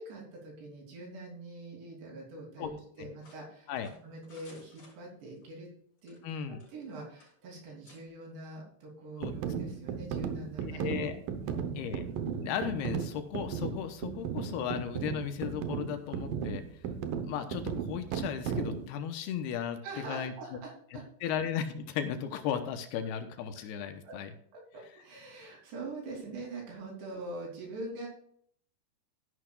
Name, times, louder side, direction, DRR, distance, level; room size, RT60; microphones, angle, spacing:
voice 1, 0.0-3.7 4.0-5.7 6.0-6.2 6.5-11.0 11.4-11.8 19.8-21.0 24.0-24.1 24.5-28.1, right 2 dB, 90° right, -1 dB, 5.4 m, -44 dB
sound 1, 3.2-5.5 6.0-6.9 7.2-7.3 7.8-8.0, left 2 dB, 50° left, 6.1 m, -59 dB
voice 2, 6.2-6.6 9.2-9.3 10.6-11.2 11.8-12.0 12.4-16.6 17.2-19.8 20.1-20.3 21.2-24.3, left 8 dB, 80° left, 8 dB, 2.7 m, -35 dB
sound 2, 9.2-18.9, right 7 dB, 70° right, 2.2 m, -35 dB
13.5 x 11.0 x 2.4 m, 0.63 s
omnidirectional pair, 4.8 m